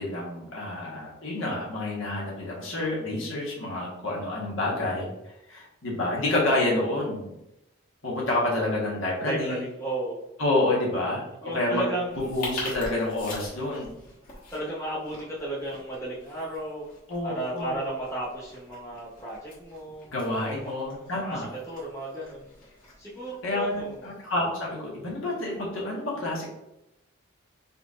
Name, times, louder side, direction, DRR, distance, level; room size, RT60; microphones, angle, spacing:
voice 1, 0.0-7.4 8.0-9.6 10.4-11.9 12.3-13.9 17.1-17.7 20.1-21.5 23.4-26.4, left 2 dB, 70° left, -4 dB, 1.4 m, -28 dB
voice 2, 9.2-10.2 11.4-12.3 14.5-16.9 17.2-20.1 20.5-22.5 23.0-24.0, right 1 dB, 15° left, -7 dB, 1.2 m, -34 dB
sound 1, 12.1-24.2, left 2 dB, 40° left, 1.4 m, -44 dB
4.3 x 4.1 x 2.5 m, 0.89 s
head